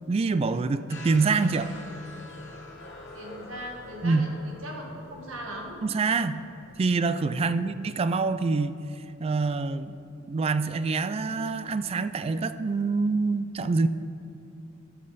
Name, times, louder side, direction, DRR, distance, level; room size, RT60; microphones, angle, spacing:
voice 1, 0.1-1.7 4.0-4.3 5.8-6.4 6.8-8.7 9.2-10.0 10.3-13.9, right 4 dB, 30° right, 13 dB, 0.3 m, -25 dB
sound 1, 0.9-6.8, left 2 dB, 60° left, 1.2 m, -46 dB
voice 2, 3.1-5.8, right 1 dB, 75° right, 0 dB, 1.7 m, -39 dB
11.0 x 8.4 x 4.0 m, 2.6 s
head